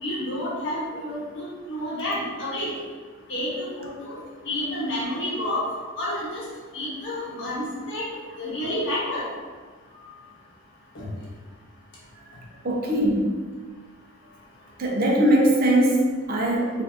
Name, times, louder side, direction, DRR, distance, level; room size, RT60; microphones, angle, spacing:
voice 1, 0.0-2.7 3.3-4.2 4.4-5.7 6.0-6.4 6.7-8.0 8.4-9.3 10.9-11.0, left 1 dB, 65° left, -7 dB, 1.3 m, -29 dB
voice 2, 12.6-13.3 14.8-16.8, right 1 dB, 50° right, -1 dB, 0.6 m, -21 dB
4.2 x 2.6 x 2.8 m, 1.5 s
head